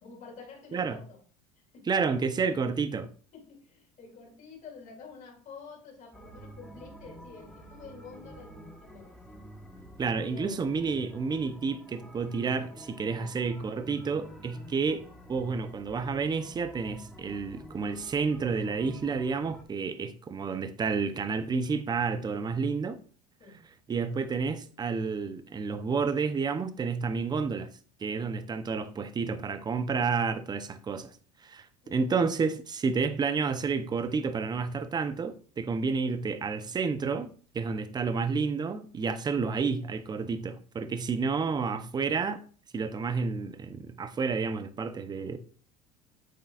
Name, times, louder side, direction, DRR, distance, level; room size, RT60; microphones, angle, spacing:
voice 1, 0.0-1.2 1.7-1.9 2.4-2.5 3.3-9.4 10.2-10.7 13.1-13.3 23.4-23.6 31.8-32.2, left 4 dB, 45° left, 2.7 m, -49 dB
voice 2, 1.9-3.1 10.0-15.0 15.3-23.0 23.9-27.7 28.0-31.1 31.4-42.4 42.7-45.4, right 5 dB, 25° right, 0.7 m, -30 dB
sound 1, 6.1-19.6, right 1 dB, ahead, 1.5 m, -49 dB
7.9 x 6.6 x 2.5 m
supercardioid pair, 100°, 18 cm